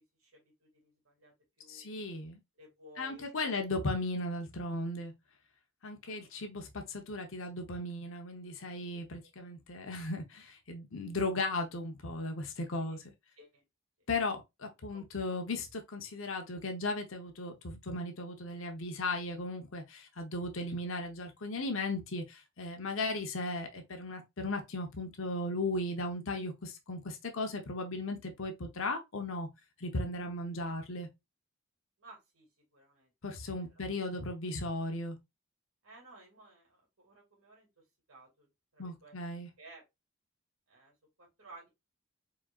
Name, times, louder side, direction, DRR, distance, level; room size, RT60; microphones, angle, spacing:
voice 1, 0.2-1.9 2.5-3.6 6.0-6.5 12.8-13.0 13.4-13.6 14.9-15.0 32.0-32.5 32.7-33.1 33.6-34.0 35.8-37.7 38.1-38.5 38.7-39.2 39.6-39.8 40.7-41.7, right 2 dB, 80° right, 2.3 m, -56 dB
voice 2, 1.7-2.4 3.0-5.1 5.8-13.0 14.1-29.5 29.8-31.1 33.2-35.2 38.8-39.5, left 2 dB, 70° left, 0.8 m, -36 dB
4.9 x 4.2 x 2.4 m
head